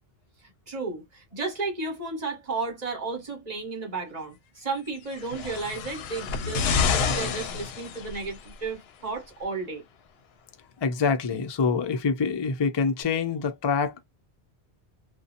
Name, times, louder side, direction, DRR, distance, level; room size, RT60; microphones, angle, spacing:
voice 1, 0.7-9.8, right 3 dB, 40° right, 1.3 m, -33 dB
sound 1, 5.1-8.5 9.4-9.5, left 6 dB, 75° left, 0.8 m, -28 dB
voice 2, 10.8-14.0, left 5 dB, 35° left, 0.4 m, -25 dB
2.6 x 2.2 x 2.5 m
omnidirectional pair, 1.1 m